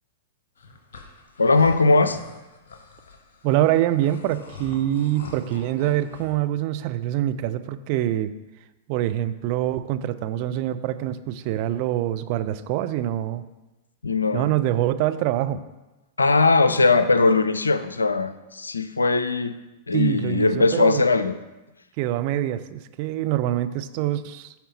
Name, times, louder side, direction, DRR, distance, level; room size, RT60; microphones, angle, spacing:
sound 1, 0.6-6.3, left 3 dB, 65° left, 1.0 m, -45 dB
voice 1, 1.4-2.2 14.0-14.5 16.2-19.5 19.9-21.3, left 3 dB, 85° left, 12 dB, 0.4 m, -20 dB
voice 2, 3.4-8.3 8.9-13.4 14.3-15.6 19.9-21.0 22.0-24.5, right 13 dB, 45° right, 11 dB, 0.4 m, -25 dB
9.2 x 4.3 x 4.1 m, 1.1 s
figure-of-eight pair, 100°, 0 cm